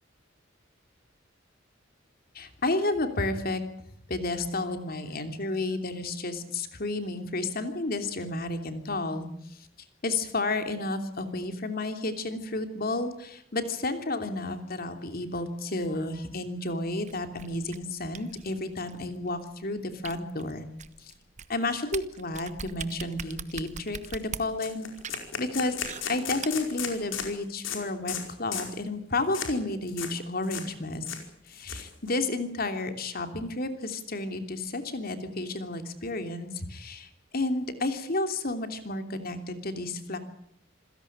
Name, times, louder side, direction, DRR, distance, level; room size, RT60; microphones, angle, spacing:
voice 1, 2.3-3.6 4.1-9.3 10.0-20.6 21.5-24.9 25.4-25.7 26.1-31.0 31.5-40.2, left 2 dB, 50° left, 7 dB, 3.0 m, -31 dB
sound 1, 17.1-27.3, right 6 dB, 40° right, 1.2 m, -42 dB
sound 2, 23.2-23.3 23.7-23.8 24.1-24.2 24.6-27.3 27.6-27.8 28.1-28.2 28.5-28.8 29.3-29.5 29.9-30.1 30.4-30.7 30.9-32.1, left 7 dB, 90° left, 4.9 m, -35 dB
27.5 x 16.5 x 8.7 m, 0.69 s
head